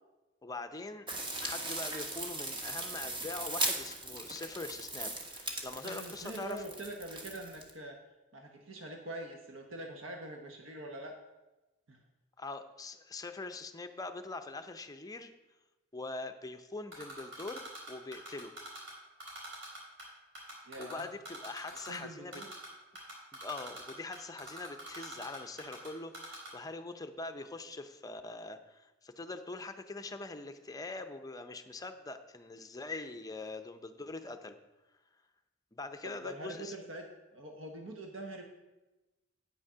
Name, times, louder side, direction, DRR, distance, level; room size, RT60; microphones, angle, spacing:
voice 1, 0.4-1.1 1.4-6.6 12.4-15.3 15.9-17.6 17.9-18.5 20.8-22.4 23.3-34.6 35.7-36.7, left 3 dB, 20° left, 8 dB, 0.5 m, -43 dB
sound 1, 1.1-7.7, right 2 dB, 25° right, 1.1 m, -38 dB
voice 2, 5.8-8.0 8.3-11.2 11.9-12.0 20.7-21.1 21.9-22.5 36.0-37.0 37.3-38.4, right 1 dB, 85° right, 2 dB, 1.0 m, -44 dB
Typing, 16.9-18.9 19.2-20.0 20.3-22.0 22.3-22.7 22.9-25.9 26.1-26.5, right 1 dB, 65° right, 3.7 m, -44 dB
8.7 x 6.2 x 5.6 m, 1.1 s
head